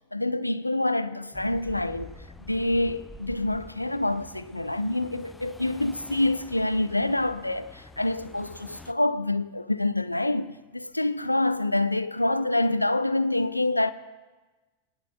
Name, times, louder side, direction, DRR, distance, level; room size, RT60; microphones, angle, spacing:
voice 1, 0.1-13.9, left 2 dB, 85° left, 0.3 m, -26 dB
sound 1, 1.3-8.9, left 2 dB, 5° left, 0.4 m, -47 dB
24.5 x 10.5 x 2.4 m
figure-of-eight pair, 90°, 0 cm